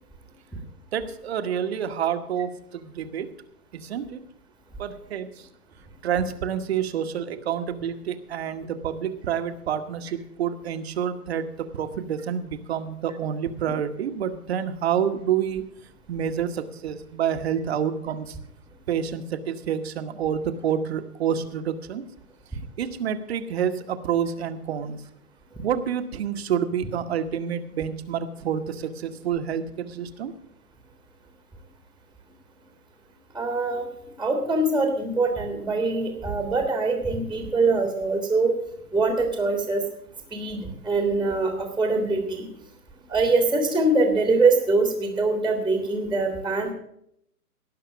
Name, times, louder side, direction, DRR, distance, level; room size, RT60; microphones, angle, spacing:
voice 1, 0.9-3.3 3.7-4.2 4.8-5.5 6.0-15.6 16.1-18.4 18.9-22.1 22.8-25.0 25.6-30.3, right 8 dB, 45° right, 9 dB, 1.2 m, -28 dB
voice 2, 33.3-33.9 34.2-38.5 38.9-39.8 40.3-42.5 43.1-46.7, right 3 dB, ahead, 3 dB, 1.4 m, -23 dB
18.0 x 6.0 x 7.2 m, 0.73 s
hypercardioid pair, 135°, 46 cm